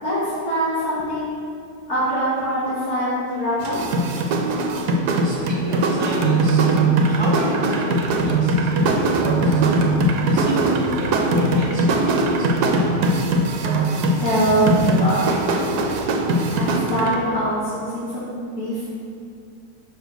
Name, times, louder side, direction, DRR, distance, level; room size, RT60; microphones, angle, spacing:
voice 1, 0.0-1.3 1.9-3.8 14.2-15.4 15.8-16.0 16.5-18.8, right 1 dB, 65° left, -14 dB, 2.5 m, -23 dB
sound 1, 3.6-17.2, right 2 dB, 80° right, 1.2 m, -20 dB
voice 2, 5.2-6.7 7.0-9.7 10.2-13.2, equal, 25° left, -5 dB, 0.6 m, -33 dB
5.1 x 5.1 x 6.3 m, 2.5 s
omnidirectional pair, 1.7 m